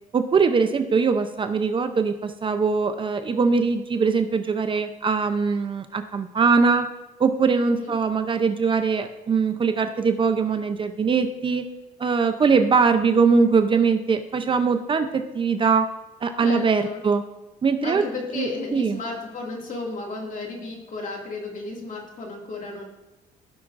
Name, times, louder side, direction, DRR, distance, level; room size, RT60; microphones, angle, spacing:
voice 1, 0.1-6.9 7.2-11.7 12.0-15.9 16.2-17.2 17.6-18.0 18.3-19.0, right 5 dB, 30° right, 7 dB, 0.6 m, -21 dB
voice 2, 7.6-7.9 16.4-17.0 17.8-22.8, left 3 dB, 50° left, 0 dB, 2.2 m, -33 dB
16.0 x 5.8 x 2.5 m, 1.0 s
cardioid pair, 110°, 17 cm